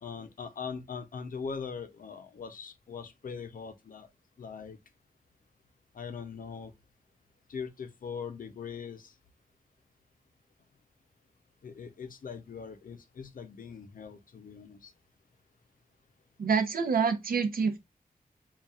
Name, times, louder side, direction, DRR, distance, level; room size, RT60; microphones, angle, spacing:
voice 1, 0.0-4.1 4.4-4.8 5.9-6.7 7.5-9.1 11.6-14.9, left 6 dB, 70° left, 0.5 m, -41 dB
voice 2, 16.4-17.8, right 5 dB, 80° right, 0.7 m, -27 dB
5.4 x 2.3 x 2.3 m
wide cardioid pair, 130°, 15 cm